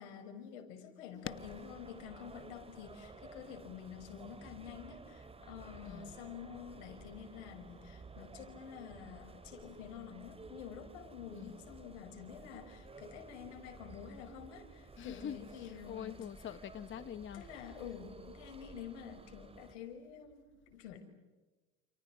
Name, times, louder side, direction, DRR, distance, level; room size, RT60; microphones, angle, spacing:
voice 1, 0.0-16.2 17.3-21.1, left 8 dB, 85° left, 5.7 m, -49 dB
sound 1, 1.2-19.8, right 3 dB, 15° right, 3.1 m, -54 dB
voice 2, 5.9-6.2 11.3-11.6 15.0-17.5, left 9 dB, 35° left, 1.0 m, -45 dB
29.5 x 29.5 x 6.2 m
supercardioid pair, 100°, 36 cm